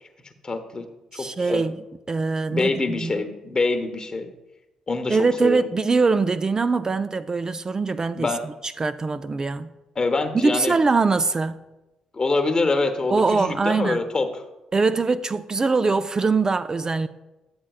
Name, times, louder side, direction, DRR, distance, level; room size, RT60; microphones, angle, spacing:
voice 1, 0.4-0.9 1.2-1.6 2.5-4.3 4.9-5.7 8.1-8.4 10.0-10.8 12.1-14.3, left 3 dB, 35° left, 1.0 m, -25 dB
voice 2, 1.1-1.8 2.1-3.2 5.1-9.7 10.3-11.6 13.1-14.1 14.7-17.1, right 4 dB, 30° right, 0.3 m, -23 dB
10.0 x 7.2 x 2.4 m
hypercardioid pair, 45°, 2 cm